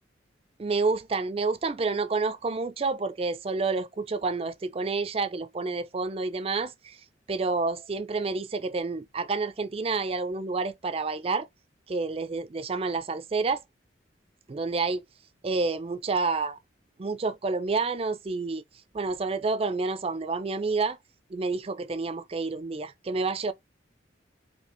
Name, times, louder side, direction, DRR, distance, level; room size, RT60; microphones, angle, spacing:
voice 1, 0.6-7.0 7.3-11.5 11.9-13.6 14.5-15.0 15.4-16.6 17.0-18.6 18.9-21.0 21.3-23.5, right 3 dB, 30° right, 0.4 m, -29 dB
4.4 x 2.8 x 3.0 m
head